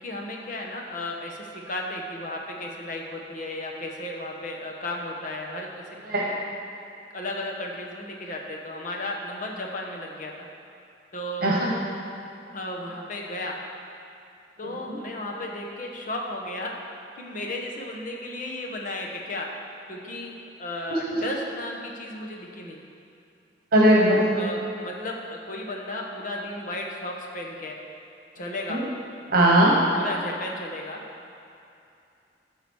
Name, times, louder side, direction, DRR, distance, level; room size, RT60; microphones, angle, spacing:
voice 1, 0.0-5.7 7.1-10.5 11.1-11.5 12.5-13.6 14.6-16.8 17.2-19.5 19.9-20.3 20.6-22.8 24.4-27.8 28.3-28.8 29.9-31.0, left 1 dB, 45° left, 0 dB, 1.1 m, -34 dB
voice 2, 23.7-24.3 28.7-28.8 29.3-29.8, right 1 dB, 55° right, -3 dB, 1.1 m, -19 dB
13.5 x 5.0 x 4.7 m, 2.6 s
head